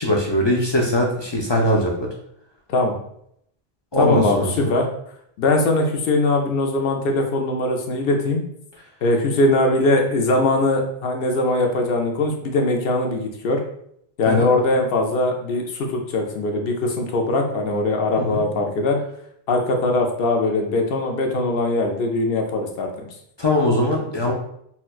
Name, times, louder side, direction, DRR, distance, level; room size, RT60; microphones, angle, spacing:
voice 1, 0.0-2.1 3.9-4.7 14.3-14.5 18.2-18.5 23.4-24.3, left 1 dB, 45° left, -2 dB, 0.3 m, -21 dB
voice 2, 4.0-4.9 5.4-8.4 9.0-13.6 14.2-19.0 19.5-22.9, left 2 dB, 70° left, 2 dB, 0.7 m, -21 dB
4.3 x 2.2 x 2.3 m, 0.71 s
omnidirectional pair, 1.1 m